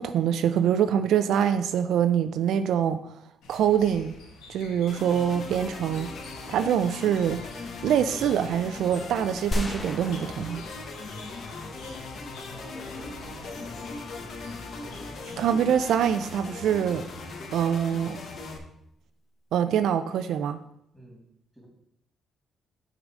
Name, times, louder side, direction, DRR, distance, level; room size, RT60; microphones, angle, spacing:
voice 1, 0.0-3.2 3.5-4.1 4.5-6.1 6.5-7.4 7.8-10.6 15.4-17.1 17.5-18.2 19.5-20.6, right 9 dB, 75° right, 10 dB, 0.4 m, -24 dB
sound 1, 3.4-15.9, left 2 dB, 90° left, 1.2 m, -47 dB
sound 2, 4.9-18.6, left 3 dB, 60° left, 1.0 m, -39 dB
sound 3, 9.5-11.8, left 1 dB, 30° left, 0.8 m, -34 dB
voice 2, 12.5-15.4 20.9-21.2 21.5-21.7, right 1 dB, 5° right, -1 dB, 2.7 m, -50 dB
6.4 x 3.8 x 6.1 m, 0.77 s
cardioid pair, 90°, 0 cm